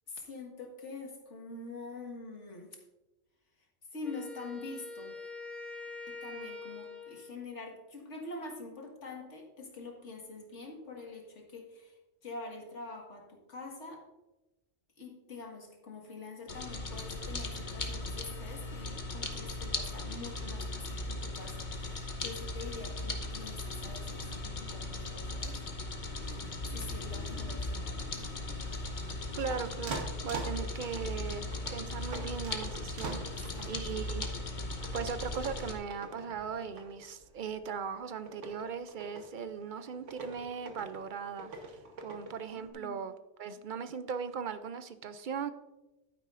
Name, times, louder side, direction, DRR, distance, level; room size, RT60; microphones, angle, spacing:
voice 1, 0.1-2.8 3.9-5.3 6.1-14.0 15.0-25.6 26.2-28.4 33.3-34.0 42.6-43.1, left 3 dB, 70° left, 1 dB, 2.0 m, -45 dB
Wind instrument woodwind instrument, 4.0-7.4, left 3 dB, ahead, 1.6 m, -44 dB
sound 1, 16.5-35.7, left 2 dB, 40° left, 1.1 m, -38 dB
sound 2, 27.0-42.7, right 3 dB, 75° right, 1.5 m, -46 dB
voice 2, 29.3-34.3 34.9-43.1 43.4-45.5, right 6 dB, 55° right, 11 dB, 0.6 m, -39 dB
11.5 x 9.6 x 2.5 m, 1.0 s
omnidirectional pair, 1.3 m